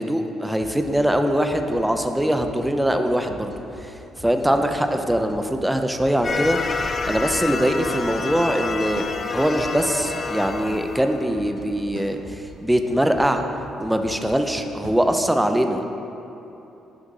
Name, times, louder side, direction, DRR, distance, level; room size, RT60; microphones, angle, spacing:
voice 1, 0.0-3.5 4.2-9.0 9.3-12.2 12.6-13.4 13.8-15.8, equal, 5° right, 6 dB, 0.6 m, -22 dB
sound 1, 0.6-14.9, equal, 20° left, 1.1 m, -43 dB
sound 2, 6.2-11.7, left 4 dB, 40° left, 0.4 m, -28 dB
sound 3, 9.0-9.3 11.9-12.3 14.8-15.1, right 3 dB, 85° right, 0.6 m, -39 dB
8.5 x 3.5 x 5.5 m, 3.0 s
supercardioid pair, 65°, 0 cm